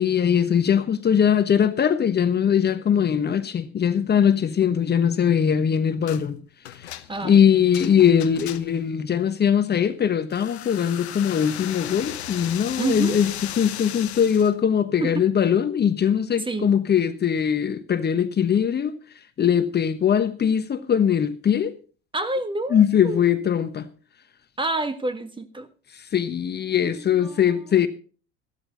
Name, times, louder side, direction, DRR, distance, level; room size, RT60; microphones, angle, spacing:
voice 1, 0.0-6.4 6.7-13.3 13.6-18.9 19.4-21.7 22.7-23.9 25.9-27.9, left 8 dB, 30° left, 1.2 m, -21 dB
sound 1, 6.1-6.3 6.6-8.9 10.3-14.5, left 12 dB, 80° left, 1.0 m, -36 dB
voice 2, 7.1-7.5 12.8-13.2 15.0-15.3 16.4-16.7 22.1-23.3 24.6-25.7 26.7-27.8, right 2 dB, 15° right, 1.6 m, -29 dB
14.5 x 12.5 x 4.0 m
hypercardioid pair, 75°, 32 cm